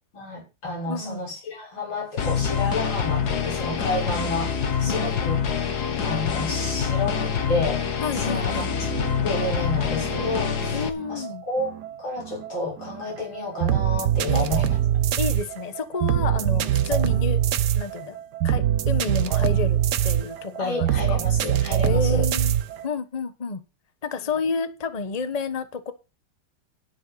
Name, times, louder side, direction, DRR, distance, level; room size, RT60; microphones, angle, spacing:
voice 1, 0.1-5.4 6.0-7.8 8.1-8.9 9.2-10.8 11.1-11.7 12.0-14.8 16.5-16.9 20.6-22.3 24.2-24.3, left 2 dB, 70° left, 7.0 m, -30 dB
voice 2, 0.8-1.2 4.9-5.1 8.0-8.7 10.7-11.4 14.3-14.8 15.2-17.4 17.7-18.2 18.4-21.2 21.8-22.6 22.8-23.6 24.0-25.9, left 5 dB, 25° left, 0.9 m, -30 dB
sound 1, 2.2-10.9, left 6 dB, 50° left, 1.8 m, -26 dB
sound 2, 8.6-22.9, right 11 dB, 60° right, 1.2 m, -24 dB
12.5 x 10.5 x 4.1 m
omnidirectional pair, 2.3 m